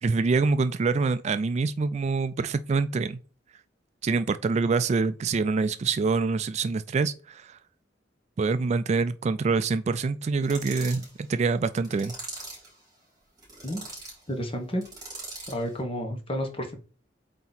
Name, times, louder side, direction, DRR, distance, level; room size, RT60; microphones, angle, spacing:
voice 1, 0.0-3.2 4.0-7.6 8.4-12.1, right 4 dB, 40° right, 0.3 m, -25 dB
sound 1, 10.4-11.1 11.8-12.7 13.4-14.2 14.8-15.6, right 2 dB, 20° right, 3.4 m, -40 dB
voice 2, 14.3-14.8 15.5-16.8, equal, 30° left, 1.2 m, -31 dB
8.2 x 2.8 x 4.0 m
head